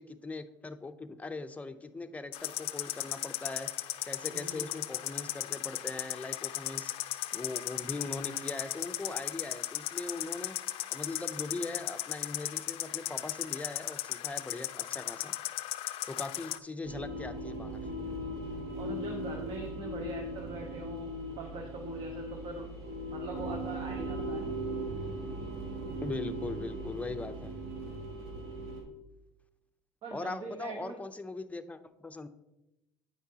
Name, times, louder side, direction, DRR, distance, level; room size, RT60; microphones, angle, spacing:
voice 1, 0.0-3.7 4.1-7.0 7.3-10.6 10.9-15.4 16.1-17.8 26.0-27.5 30.1-32.3, left 3 dB, 15° left, 9 dB, 0.5 m, -40 dB
sound 1, 2.3-16.6, left 15 dB, 65° left, 0.4 m, -37 dB
voice 2, 4.3-4.6 18.7-22.7 23.1-24.4 30.0-31.0, right 3 dB, 55° right, 2 dB, 1.0 m, -42 dB
sound 2, 16.8-28.8, right 1 dB, 85° right, 1.6 m, -38 dB
8.8 x 5.8 x 2.8 m, 0.92 s
supercardioid pair, 95°, 10 cm